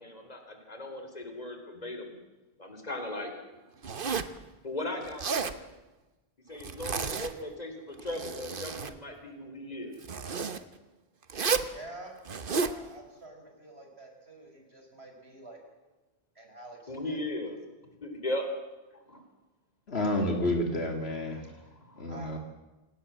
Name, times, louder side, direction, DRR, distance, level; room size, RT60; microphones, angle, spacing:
voice 1, 0.0-2.1 2.6-3.3 4.6-5.7 6.5-10.0 16.9-17.5 18.0-18.5 19.1-19.2 21.9-22.1, left 1 dB, 40° left, 5 dB, 3.9 m, -37 dB
Zipper (clothing), 3.8-4.4 5.1-5.6 6.6-7.5 7.9-9.0 10.0-10.6 11.3-11.7 12.3-12.8, right 5 dB, 60° right, 1.3 m, -32 dB
voice 2, 11.7-12.1 12.4-15.6 16.4-17.2 20.1-20.3 22.1-22.3, right 2 dB, 90° right, 2 dB, 5.5 m, -48 dB
voice 3, 19.9-21.4 22.0-22.4, left 1 dB, 85° left, 4 dB, 2.8 m, -29 dB
27.5 x 18.0 x 7.5 m, 1.1 s
omnidirectional pair, 1.0 m